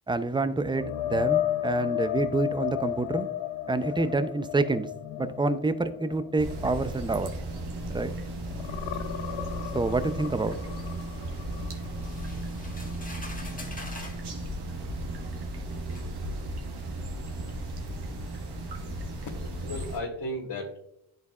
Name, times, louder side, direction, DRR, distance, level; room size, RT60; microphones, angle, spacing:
voice 1, 0.1-3.3 3.7-4.9 5.2-7.3 7.9-8.1 9.7-10.6, right 3 dB, 10° right, 12 dB, 0.5 m, -27 dB
sound 1, 0.7-8.1 8.5-12.3 12.7-12.9 16.3-16.4, left 12 dB, 75° left, 0.5 m, -33 dB
sound 2, 6.4-20.0, right 1 dB, 60° right, 1.5 m, -35 dB
sound 3, 12.0-14.2 15.2-15.3 15.9-16.1, left 2 dB, 20° left, 1.5 m, -44 dB
voice 2, 18.9-20.8, left 1 dB, 55° left, -2 dB, 1.4 m, -36 dB
10.5 x 4.0 x 2.4 m, 0.74 s
supercardioid pair, 45°, 45 cm